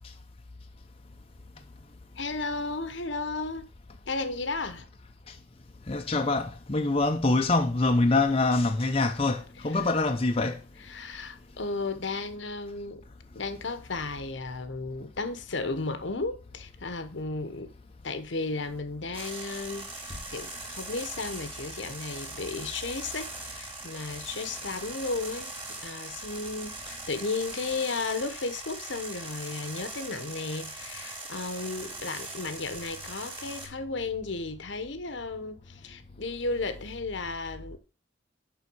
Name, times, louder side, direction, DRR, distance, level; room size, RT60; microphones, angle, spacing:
voice 1, 2.2-3.7 4.1-4.9 9.6-9.9 10.8-13.0 13.3-17.7 18.0-19.9 20.3-25.5 25.8-37.8, left 3 dB, 70° left, 1.0 m, -34 dB
voice 2, 5.9-10.6, left 2 dB, 30° left, 0.7 m, -25 dB
sound 1, 19.1-33.7, right 2 dB, 25° right, 2.5 m, -41 dB
7.0 x 5.6 x 6.2 m
head